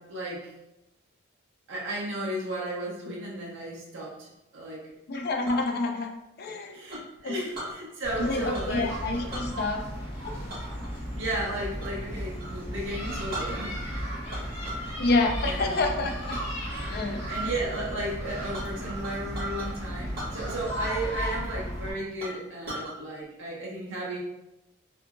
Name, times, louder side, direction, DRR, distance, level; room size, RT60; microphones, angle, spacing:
voice 1, 0.1-0.5 1.7-4.8 6.7-8.9 11.2-14.0 15.4-16.1 16.7-16.9 17.3-24.2, right 1 dB, 65° right, -4 dB, 0.6 m, -34 dB
voice 2, 5.1-6.1 6.4-6.7 7.2-7.4 8.1-9.8 10.2-10.3 15.0-16.4 16.9-17.2, left 3 dB, 50° left, 3 dB, 0.4 m, -27 dB
Chink clink, 5.1-5.7 6.9-7.8 8.5-8.8 9.1-9.5 10.5-12.0 12.4-12.6 13.0-13.1 13.3-13.9 14.3-14.9 15.3-15.7 16.3-16.4 17.0-17.3 17.7-17.8 18.1-19.7 20.1-20.9 21.2-21.3 21.7-21.8 22.2-22.9, right 1 dB, 45° right, 1.0 m, -40 dB
sound 1, 8.0-21.9, equal, 30° left, 1.0 m, -35 dB
2.7 x 2.6 x 2.3 m, 0.92 s
head